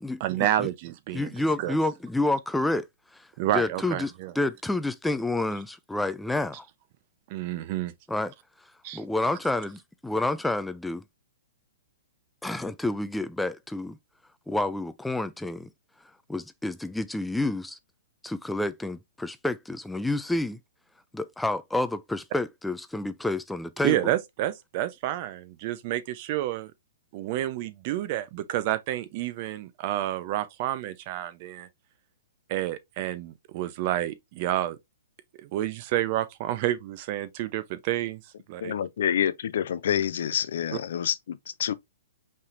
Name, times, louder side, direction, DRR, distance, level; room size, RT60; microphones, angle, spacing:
voice 1, 0.2-1.3 1.6-1.8 3.4-4.3 7.3-7.9 8.8-9.0 23.8-26.7 27.1-31.7 32.5-34.8 35.4-38.2 38.5-38.7, right 13 dB, 45° right, 0.7 m, -29 dB
voice 2, 1.1-2.9 3.1-3.3 3.5-6.7 8.1-8.3 8.9-11.0 12.4-14.0 14.5-15.7 16.3-17.8 18.2-20.6 21.1-24.0, left 2 dB, 5° left, 0.4 m, -29 dB
voice 3, 38.6-41.7, left 9 dB, 65° left, 0.5 m, -27 dB
5.4 x 3.5 x 2.5 m
hypercardioid pair, 125°, 0 cm